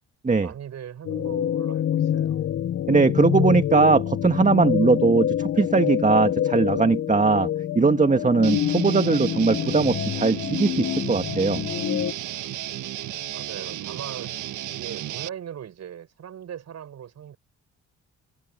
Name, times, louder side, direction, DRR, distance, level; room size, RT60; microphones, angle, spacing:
voice 1, 0.4-2.4 13.3-14.3 14.7-17.4, right 9 dB, 60° right, 6.1 m, -39 dB
sound 1, 1.0-12.1, left 10 dB, 50° left, 0.6 m, -26 dB
voice 2, 2.9-7.5 7.8-11.6, right 4 dB, 25° right, 1.8 m, -20 dB
Guitar, 8.4-15.3, right 13 dB, 80° right, 1.5 m, -33 dB
cardioid pair, 90°, 30 cm